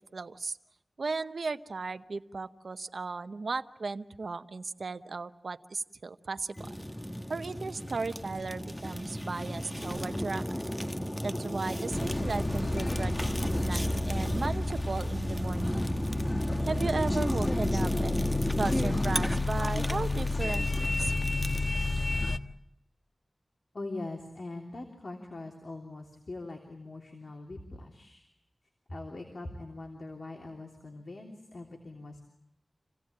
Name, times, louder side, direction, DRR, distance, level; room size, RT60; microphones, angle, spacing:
voice 1, 0.1-0.6 1.0-6.7 7.3-10.5 11.2-15.9 16.7-18.2 18.5-21.2, right 4 dB, 80° right, 11 dB, 0.8 m, -36 dB
Fire, 6.6-21.7, equal, 10° left, 1.4 m, -34 dB
sound 1, 11.9-22.4, left 2 dB, 35° left, 1.2 m, -31 dB
voice 2, 23.7-28.3 28.9-32.2, left 2 dB, 65° left, 2 dB, 3.2 m, -42 dB
27.0 x 17.0 x 8.7 m, 0.81 s
wide cardioid pair, 55°, 0 cm